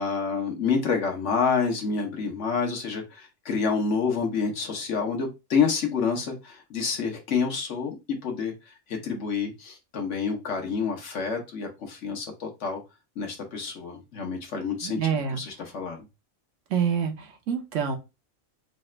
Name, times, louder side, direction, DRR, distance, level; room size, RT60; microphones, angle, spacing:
voice 1, 0.0-8.0 8.2-12.8 13.2-16.0, left 5 dB, 70° left, 2 dB, 1.4 m, -28 dB
voice 2, 14.8-15.4 16.7-18.0, right 7 dB, 75° right, 5 dB, 1.2 m, -27 dB
4.0 x 2.5 x 3.2 m, 0.25 s
omnidirectional pair, 1.3 m